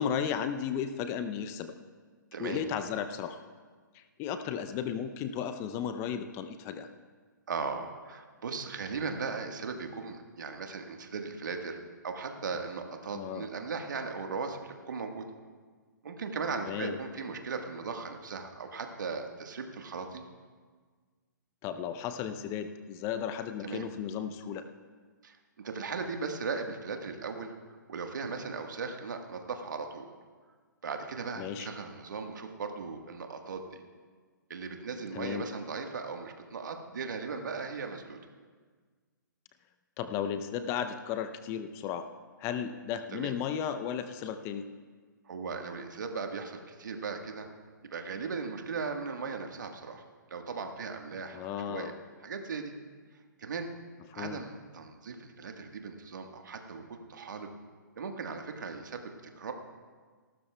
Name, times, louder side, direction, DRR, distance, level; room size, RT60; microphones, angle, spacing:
voice 1, 0.0-1.7 2.4-3.4 3.9-6.9 13.1-13.5 16.6-16.9 21.6-24.7 31.4-31.7 35.1-35.5 40.0-42.1 42.4-44.7 51.3-51.9 54.2-54.4, left 8 dB, 25° left, 9 dB, 0.6 m, -34 dB
voice 2, 7.5-15.3 16.0-20.2 23.6-23.8 25.2-27.5 27.9-30.1 30.8-33.8 34.5-38.2 43.1-43.3 45.2-47.5 47.8-50.0 50.3-51.4 51.7-51.9 52.2-52.7 53.4-53.7 54.1-57.5 58.0-59.1 59.4-59.5, right 4 dB, 65° right, 4 dB, 1.5 m, -38 dB
28.5 x 12.5 x 2.3 m, 1.5 s
figure-of-eight pair, 130°, 11 cm